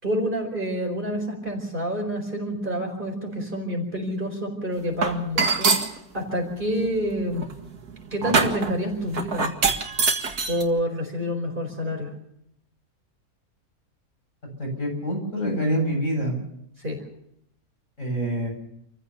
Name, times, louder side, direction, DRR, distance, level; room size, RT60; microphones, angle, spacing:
voice 1, 0.0-5.8 6.1-7.5 8.1-9.5 10.5-12.1 16.8-17.0, equal, 35° right, 2 dB, 5.0 m, -28 dB
sound 1, 5.0-5.9 6.6-10.6, right 4 dB, 85° right, 2.4 m, -24 dB
voice 2, 14.6-16.4 18.0-18.5, equal, 55° left, 0 dB, 8.6 m, -26 dB
28.5 x 15.0 x 6.9 m, 0.76 s
omnidirectional pair, 1.6 m